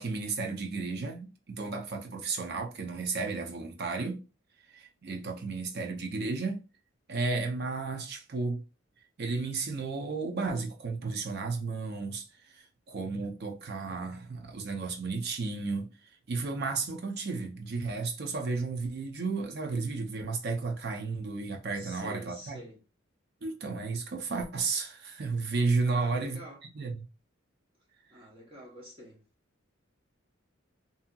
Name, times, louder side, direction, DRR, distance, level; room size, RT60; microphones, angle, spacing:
voice 1, 0.0-4.2 4.7-6.6 7.1-8.6 9.2-15.9 16.3-22.6 23.4-26.4 26.7-26.9, right 4 dB, 55° right, 0.6 m, -33 dB
voice 2, 21.7-22.8 25.8-26.6 28.1-29.2, equal, 25° right, 0.9 m, -47 dB
2.7 x 2.7 x 2.3 m
head